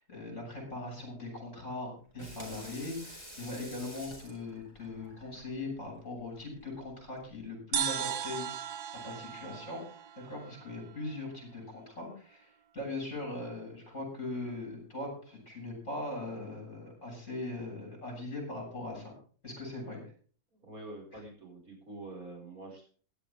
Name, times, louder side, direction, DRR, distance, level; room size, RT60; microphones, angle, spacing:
voice 1, 0.0-8.8 9.0-9.8 10.3-19.1 19.4-20.1, left 2 dB, 50° left, 0 dB, 7.5 m, -40 dB
Water tap faucet / Sink (filling or washing), 2.0-7.5, equal, 15° right, 4.3 m, -50 dB
sound 1, 7.7-11.2, right 9 dB, 85° right, 1.4 m, -37 dB
voice 2, 20.6-22.9, right 2 dB, 65° right, -2 dB, 6.0 m, -46 dB
16.0 x 11.5 x 3.6 m, 0.42 s
omnidirectional pair, 1.6 m